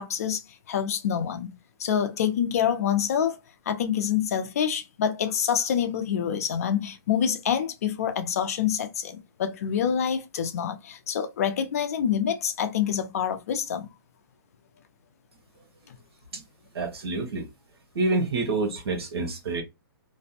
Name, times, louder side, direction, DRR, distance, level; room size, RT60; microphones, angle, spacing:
voice 1, 0.0-1.5 1.8-3.4 3.7-13.9, left 8 dB, 40° left, 0.4 m, -26 dB
voice 2, 16.7-17.5 17.9-19.6, right 3 dB, 85° right, 1.0 m, -27 dB
2.5 x 2.1 x 2.7 m
hypercardioid pair, 170°, 13 cm